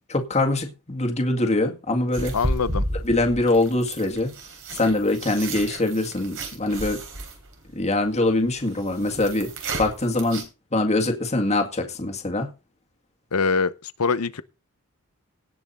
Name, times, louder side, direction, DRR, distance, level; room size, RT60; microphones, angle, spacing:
voice 1, 0.1-2.3 3.0-4.3 4.7-7.0 7.7-9.5 9.8-12.5, left 2 dB, 30° left, 1.9 m, -23 dB
sound 1, 2.1-10.4, right 1 dB, 60° right, 3.8 m, -32 dB
voice 2, 2.3-2.8 13.3-14.4, left 4 dB, 70° left, 0.8 m, -24 dB
17.5 x 6.0 x 4.3 m
head